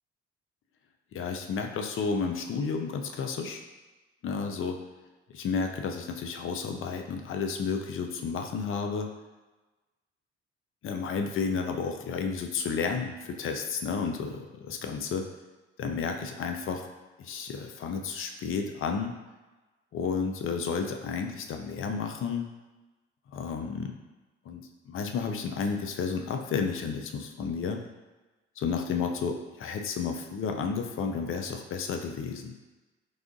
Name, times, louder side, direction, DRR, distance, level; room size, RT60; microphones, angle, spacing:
voice 1, 1.1-3.6 4.2-4.8 5.3-9.1 10.8-15.3 15.8-16.9 17.2-19.1 19.9-22.5 23.3-24.0 24.5-27.8 28.6-32.5, left 5 dB, 45° left, 4 dB, 0.5 m, -32 dB
4.8 x 2.3 x 2.6 m, 1.2 s
hypercardioid pair, 50°, 29 cm